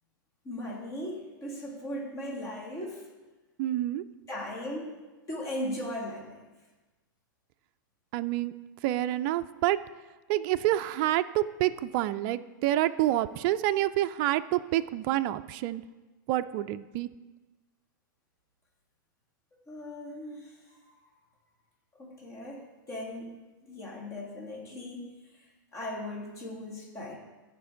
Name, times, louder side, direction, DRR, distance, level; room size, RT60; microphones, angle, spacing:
voice 1, 0.4-3.1 4.3-5.0 5.3-6.4 19.7-20.5 20.9-21.0 22.0-23.3 23.7-25.1 25.7-27.1, left 1 dB, 25° left, -2 dB, 2.4 m, -38 dB
voice 2, 3.6-4.0 8.1-8.5 8.8-9.8 10.3-15.8 16.3-17.1, right 14 dB, 45° right, 11 dB, 0.4 m, -28 dB
14.5 x 5.1 x 3.9 m, 1.2 s
hypercardioid pair, 125°, 11 cm